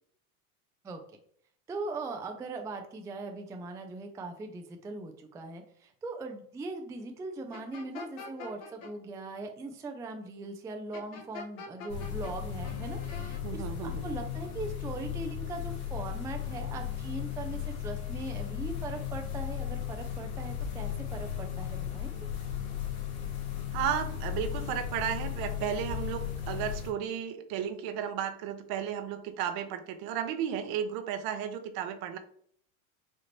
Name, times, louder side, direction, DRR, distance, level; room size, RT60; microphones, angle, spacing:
voice 1, 1.7-22.3, right 3 dB, 10° right, 4 dB, 0.3 m, -40 dB
sound 1, 7.5-8.9 10.9-12.3 12.6-13.4, left 4 dB, 55° left, 1.3 m, -45 dB
sound 2, 11.9-26.9, left 9 dB, 75° left, 1.7 m, -36 dB
voice 2, 13.4-14.0 23.7-32.2, right 9 dB, 55° right, 9 dB, 0.8 m, -34 dB
5.0 x 3.0 x 2.9 m, 0.63 s
hypercardioid pair, 95°, 43 cm